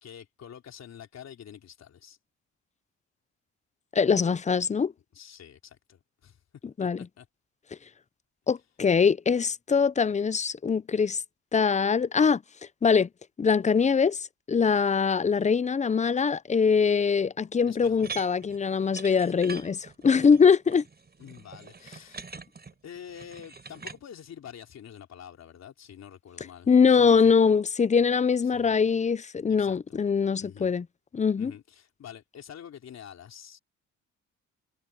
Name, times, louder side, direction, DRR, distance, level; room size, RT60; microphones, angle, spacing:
voice 1, 0.0-2.2 5.1-6.4 6.8-7.3 17.7-18.1 21.2-22.3 22.8-27.4 28.4-28.7 29.5-30.0 30.4-30.7 31.4-33.6, left 9 dB, 60° left, 3.5 m, -47 dB
voice 2, 3.9-4.9 6.8-7.0 8.5-11.2 11.5-12.4 12.8-13.1 13.4-20.8 26.7-30.9 31.1-31.5, left 6 dB, 25° left, 0.6 m, -23 dB
sound 1, 18.0-24.0, right 5 dB, 35° right, 5.1 m, -43 dB
cardioid pair, 90°, 30 cm